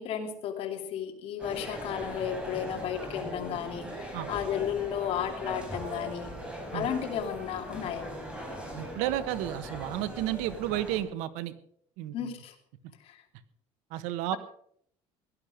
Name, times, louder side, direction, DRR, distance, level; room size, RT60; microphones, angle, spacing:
voice 1, 0.0-6.3 6.7-8.1 12.1-12.5 13.0-13.2, left 9 dB, 55° left, 4 dB, 2.6 m, -33 dB
sound 1, 1.4-11.0, equal, 10° right, 4.9 m, -40 dB
voice 2, 8.7-11.5 12.0-12.3 13.9-14.4, right 13 dB, 85° right, 13 dB, 1.2 m, -32 dB
17.5 x 12.0 x 5.1 m, 0.66 s
cardioid pair, 140°, 12 cm